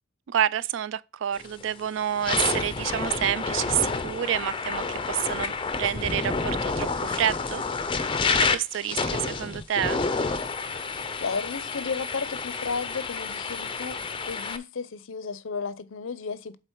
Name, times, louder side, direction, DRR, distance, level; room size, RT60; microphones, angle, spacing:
voice 1, 0.3-7.6 8.4-10.0, right 10 dB, 60° right, 0.3 m, -28 dB
sound 1, 1.4-1.6 2.1-14.6, left 4 dB, 25° left, 0.5 m, -29 dB
voice 2, 11.2-16.6, left 5 dB, 65° left, 0.6 m, -33 dB
8.0 x 3.9 x 4.5 m
head